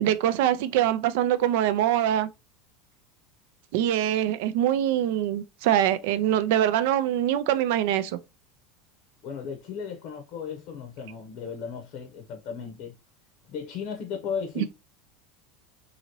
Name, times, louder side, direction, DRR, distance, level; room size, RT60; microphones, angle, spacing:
voice 1, 0.0-2.3 3.7-8.2 14.6-14.7, right 11 dB, 75° right, 0.3 m, -24 dB
voice 2, 9.2-12.9 13.5-14.7, left 6 dB, 55° left, 0.7 m, -35 dB
2.8 x 2.7 x 2.9 m
supercardioid pair, 135°, 0 cm